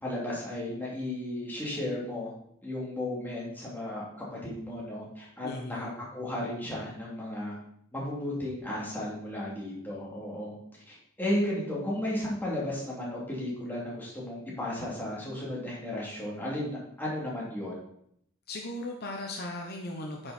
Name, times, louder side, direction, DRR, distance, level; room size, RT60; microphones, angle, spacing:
voice 1, 0.0-2.3 2.6-7.5 7.9-10.5 10.9-17.8, left 1 dB, 10° left, -5 dB, 2.9 m, -34 dB
voice 2, 5.4-5.9 18.5-20.3, left 1 dB, 50° left, 1 dB, 1.0 m, -37 dB
9.6 x 6.3 x 4.4 m, 0.71 s
head